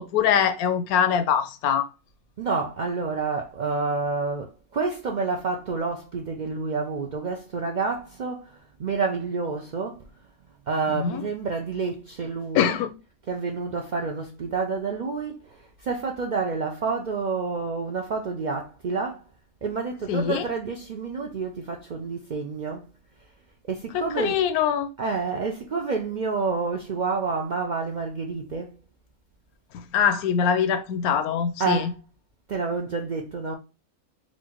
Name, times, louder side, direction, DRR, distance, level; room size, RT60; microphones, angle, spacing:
voice 1, 0.0-1.9 10.9-11.2 12.5-12.9 20.1-20.5 24.2-24.9 29.7-31.9, left 8 dB, 80° left, 1.1 m, -23 dB
voice 2, 2.4-10.1 10.7-12.8 13.3-19.2 19.6-22.9 23.7-24.4 25.0-28.7 31.6-32.0 32.5-33.5, right 4 dB, 75° right, 0.4 m, -29 dB
4.4 x 2.5 x 4.4 m
omnidirectional pair, 1.5 m